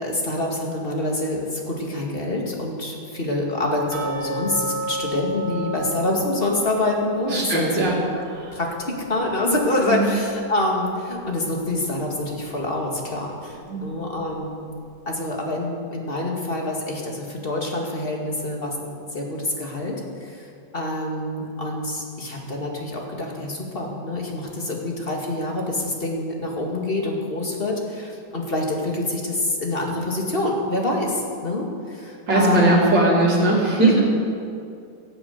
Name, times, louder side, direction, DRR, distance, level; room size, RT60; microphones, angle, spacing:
voice 1, 0.0-7.9 8.5-14.7 15.1-20.5 20.7-32.8 33.8-33.9, left 2 dB, 30° left, -1 dB, 2.2 m, -26 dB
sound 1, 3.9-10.8 11.0-11.1 11.7-11.8 12.3-12.4, right 1 dB, 55° right, 3.1 m, -33 dB
voice 2, 7.3-8.0 8.3-8.6 9.9-10.1 13.7-13.8 32.3-34.0, right 2 dB, 85° right, -4 dB, 3.5 m, -19 dB
17.0 x 7.7 x 8.1 m, 2.4 s
omnidirectional pair, 1.9 m